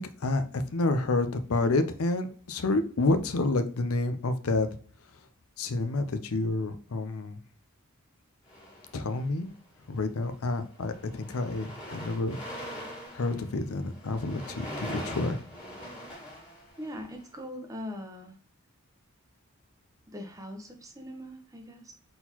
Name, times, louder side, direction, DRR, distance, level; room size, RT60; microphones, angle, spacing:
voice 1, 0.0-4.7 5.6-7.4 8.9-9.5 9.9-12.4 13.1-15.4, left 2 dB, 80° left, 9 dB, 0.6 m, -29 dB
sound 1, 8.5-9.5 10.2-10.4 10.7-17.2, equal, 20° left, 1.9 m, -42 dB
voice 2, 16.8-18.3 20.1-21.9, left 1 dB, 15° right, 4 dB, 0.7 m, -41 dB
4.3 x 3.9 x 2.8 m, 0.43 s
head